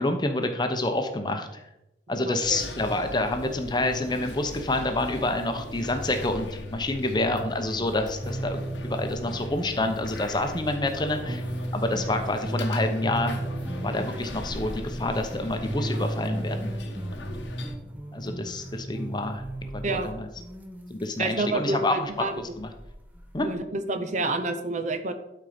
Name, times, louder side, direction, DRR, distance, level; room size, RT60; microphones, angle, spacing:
voice 1, 0.0-1.6 2.1-11.4 11.7-13.5 13.8-16.8 17.1-17.3 18.1-19.4 19.9-20.3 20.9-22.3 22.6-22.7 23.3-23.5, left 2 dB, 25° left, 6 dB, 0.8 m, -28 dB
voice 2, 2.3-2.6 7.8-7.9 19.8-20.1 21.2-22.3 23.4-25.1, right 2 dB, 40° right, 8 dB, 0.8 m, -29 dB
sound 1, 2.4-17.8, left 2 dB, 85° left, 1.2 m, -39 dB
sound 2, 8.0-21.5 22.1-23.5, right 1 dB, 10° right, 0.9 m, -35 dB
12.0 x 4.5 x 5.1 m, 0.90 s
head